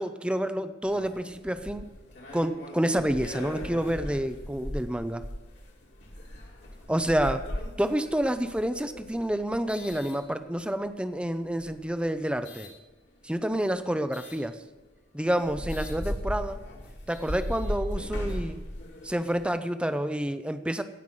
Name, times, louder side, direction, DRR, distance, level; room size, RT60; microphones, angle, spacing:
voice 1, 0.0-1.9 2.3-5.2 6.9-7.5 7.8-12.7 13.2-14.6 15.1-16.6 17.1-18.6 19.0-20.8, right 1 dB, 5° right, 10 dB, 0.7 m, -28 dB
sound 1, 0.8-10.9 11.5-12.7 14.1-14.4 14.9-15.0 15.3-19.5, equal, 65° left, 3.1 m, -38 dB
17.0 x 5.9 x 7.8 m, 1.1 s
head